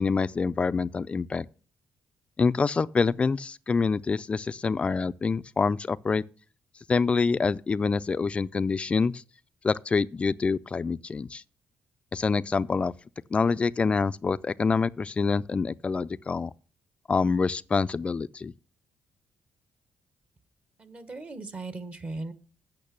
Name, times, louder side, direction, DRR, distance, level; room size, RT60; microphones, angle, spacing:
voice 1, 0.0-1.5 2.4-6.2 6.9-9.2 9.6-11.4 12.1-12.9 13.3-16.5 17.1-18.5, left 4 dB, 30° left, 0.4 m, -26 dB
voice 2, 20.8-22.3, right 3 dB, 35° right, 1.2 m, -38 dB
8.7 x 5.9 x 6.8 m
cardioid pair, 90°, 4 cm